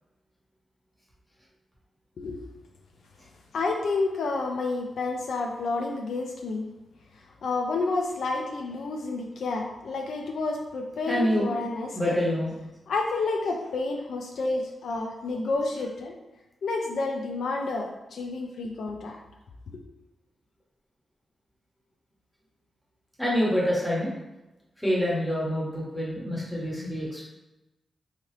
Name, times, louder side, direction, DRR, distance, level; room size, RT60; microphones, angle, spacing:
voice 1, 3.5-6.7 7.4-12.2 12.9-16.1 16.6-19.2 19.7-19.8, left 3 dB, 80° left, 1 dB, 0.4 m, -30 dB
voice 2, 11.1-11.5 11.9-12.5 23.2-24.1 24.8-27.2, equal, 5° left, -5 dB, 1.0 m, -26 dB
2.8 x 2.4 x 3.2 m, 1.0 s
wide cardioid pair, 105°, 0 cm